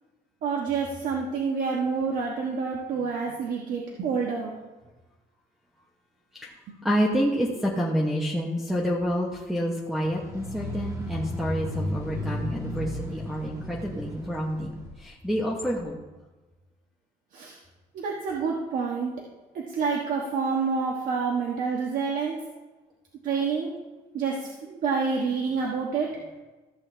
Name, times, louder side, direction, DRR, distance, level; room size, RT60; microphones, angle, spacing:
voice 1, 0.4-4.6 6.7-6.8 17.3-17.6 17.9-19.1 19.5-22.4 23.2-23.7 24.1-26.1, right 5 dB, 55° right, -1 dB, 1.3 m, -28 dB
voice 2, 6.8-16.0, equal, ahead, -5 dB, 0.9 m, -28 dB
sound 1, 10.0-15.0, left 1 dB, 20° right, 1.6 m, -34 dB
14.0 x 7.8 x 3.4 m, 1.2 s
cardioid pair, 170°, 16 cm